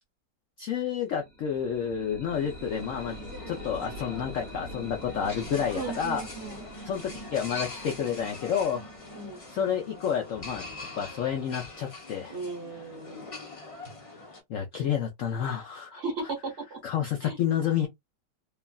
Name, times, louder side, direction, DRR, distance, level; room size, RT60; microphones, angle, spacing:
voice 1, 0.6-3.1 3.5-6.2 6.9-8.8 9.5-10.6 11.0-12.4 14.5-16.0 16.8-17.9, left 8 dB, 75° left, 0.7 m, -29 dB
sound 1, 1.1-10.9, equal, 35° right, 1.2 m, -45 dB
sound 2, 2.3-14.4, left 3 dB, 35° left, 0.5 m, -43 dB
voice 2, 5.8-6.6 9.2-9.4 12.3-13.3 15.9-16.8 17.2-17.4, right 4 dB, 55° right, 0.8 m, -36 dB
3.2 x 2.3 x 2.2 m
omnidirectional pair, 2.0 m